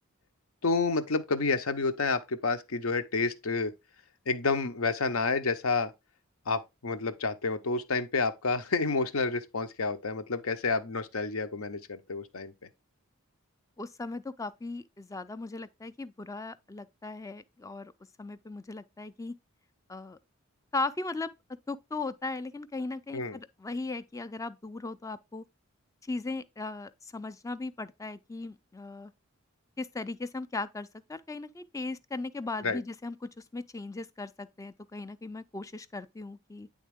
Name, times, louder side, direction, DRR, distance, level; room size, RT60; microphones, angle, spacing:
voice 1, 0.6-3.7 4.3-5.9 6.5-12.5 23.1-23.4 32.6-32.8, left 4 dB, 75° left, 0.8 m, -29 dB
voice 2, 13.8-17.9 18.2-19.3 19.9-20.2 20.7-21.3 21.7-25.4 26.0-29.1 29.8-36.7, left 3 dB, 15° left, 0.4 m, -37 dB
9.4 x 3.6 x 3.5 m
head